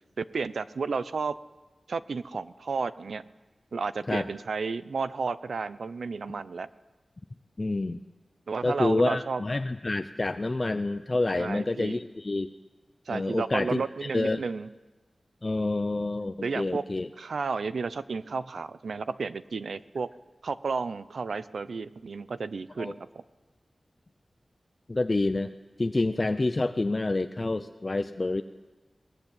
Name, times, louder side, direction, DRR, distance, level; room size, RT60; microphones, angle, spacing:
voice 1, 0.2-1.4 1.9-3.2 3.7-6.7 8.5-9.4 11.4-12.0 13.1-14.7 16.4-16.8 17.2-20.1 20.4-23.2, right 4 dB, 85° right, 15 dB, 0.8 m, -32 dB
voice 2, 7.6-8.0 8.6-12.5 13.1-14.4 15.4-17.1 22.8-22.9 24.9-25.5 25.8-28.4, left 2 dB, 35° left, 9 dB, 0.7 m, -28 dB
22.5 x 19.0 x 9.0 m, 1.2 s
wide cardioid pair, 105°, 0 cm